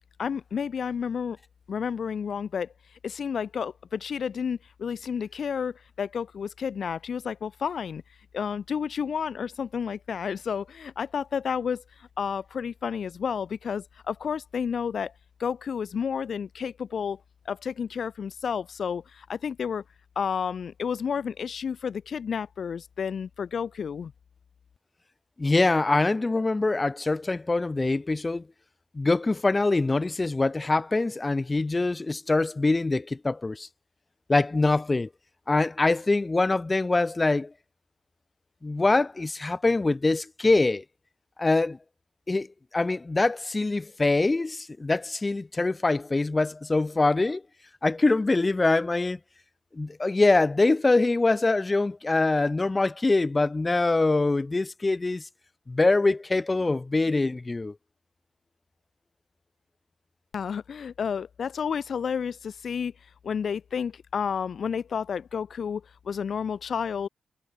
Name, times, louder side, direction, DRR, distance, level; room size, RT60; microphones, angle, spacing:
voice 1, 0.2-1.4 1.7-2.7 3.0-8.0 8.3-15.1 15.4-17.2 17.5-19.8 20.2-24.1 60.3-62.9 63.2-67.1, left 7 dB, 50° left, 2.3 m, -31 dB
voice 2, 25.4-28.5 28.9-33.7 34.3-35.1 35.5-37.5 38.6-40.8 41.4-41.8 42.3-42.5 42.7-47.4 47.8-49.2 49.7-55.3 55.7-57.8, left 3 dB, 20° left, 0.9 m, -24 dB
wide cardioid pair, 155°, 0 cm